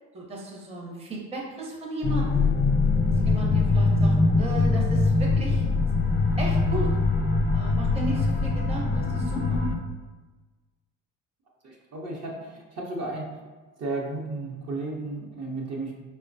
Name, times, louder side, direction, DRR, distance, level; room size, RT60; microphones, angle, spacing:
voice 1, 0.1-2.4 3.2-5.6 6.4-6.9 7.5-9.6, right 2 dB, 15° right, -3 dB, 0.8 m, -35 dB
sound 1, 2.0-9.8, left 3 dB, 30° left, 0.4 m, -23 dB
voice 2, 11.6-13.3 13.8-15.9, right 2 dB, 45° right, -3 dB, 0.8 m, -33 dB
4.5 x 2.1 x 2.6 m, 1.3 s
hypercardioid pair, 70°, 38 cm